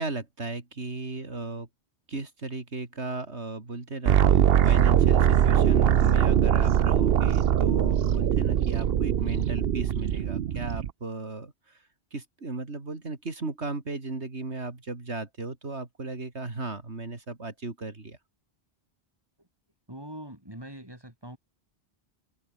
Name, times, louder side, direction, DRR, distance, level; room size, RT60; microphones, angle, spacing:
voice 1, 0.0-1.7 2.1-18.2, right 3 dB, 80° right, 3.4 m, -36 dB
sound 1, 4.1-10.9, right 9 dB, 65° right, 0.9 m, -22 dB
voice 2, 19.9-21.4, right 1 dB, 20° right, 6.0 m, -42 dB
omnidirectional pair, 1.1 m